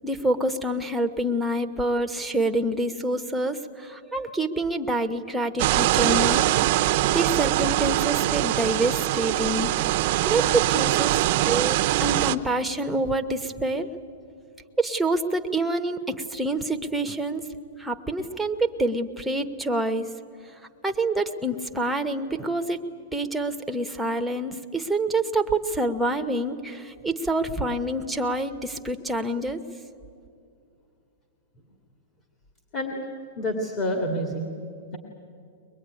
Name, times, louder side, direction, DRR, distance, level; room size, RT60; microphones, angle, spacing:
voice 1, 0.0-6.5 7.1-9.7 10.3-13.9 14.8-17.4 17.8-20.1 20.8-22.8 23.1-29.6, right 2 dB, ahead, 4 dB, 1.0 m, -27 dB
sound 1, 5.6-12.4, right 15 dB, 45° right, 0.7 m, -23 dB
voice 2, 33.4-34.5, equal, 30° left, 3 dB, 2.3 m, -28 dB
23.0 x 21.0 x 9.7 m, 2.4 s
supercardioid pair, 165°, 0 cm